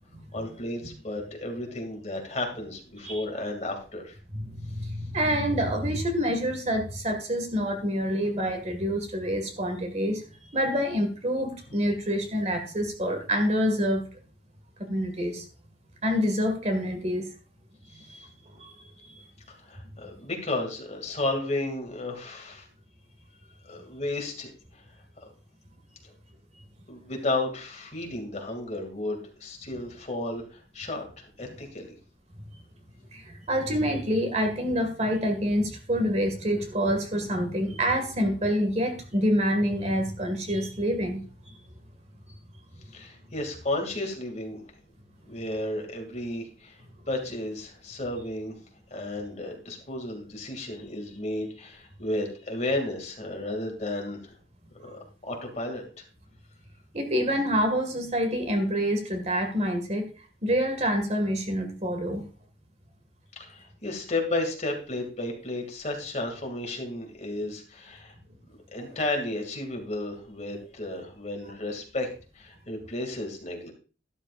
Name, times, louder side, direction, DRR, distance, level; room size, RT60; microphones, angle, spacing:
voice 1, 0.3-4.2 19.5-22.7 23.6-24.8 26.0-26.1 26.9-31.9 42.9-44.6 45.3-46.8 47.1-48.6 48.9-54.3 54.8-56.0 63.4-68.1 68.7-72.1 72.3-73.7, left 2 dB, 40° left, 2 dB, 2.4 m, -33 dB
voice 2, 4.3-10.2 10.5-14.0 14.8-15.4 16.0-17.3 17.9-18.2 18.6-18.7 19.1-19.2 33.1-41.5 56.9-60.1 60.4-62.2, equal, 40° right, 5 dB, 1.9 m, -27 dB
12.5 x 12.5 x 2.5 m, 0.36 s
head